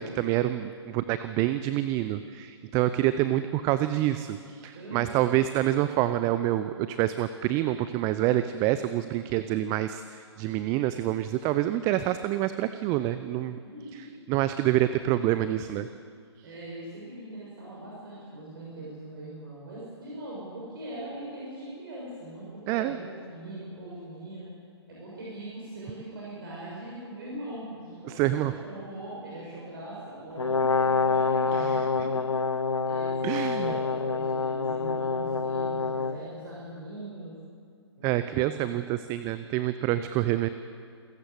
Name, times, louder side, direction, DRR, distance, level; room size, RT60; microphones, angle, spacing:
voice 1, 0.0-13.6 13.9-15.9 16.4-16.5 22.7-23.0 28.1-28.5 31.5-31.9 33.2-33.7 38.0-40.5, right 14 dB, 20° right, 12 dB, 0.6 m, -27 dB
voice 2, 4.7-5.2 13.6-14.1 16.4-24.5 24.9-37.4 38.0-38.6, right 1 dB, 50° right, -5 dB, 6.9 m, -41 dB
Brass instrument, 30.4-36.2, left 4 dB, 80° left, 0.9 m, -27 dB
27.5 x 14.5 x 8.2 m, 2.3 s
figure-of-eight pair, 120°, 15 cm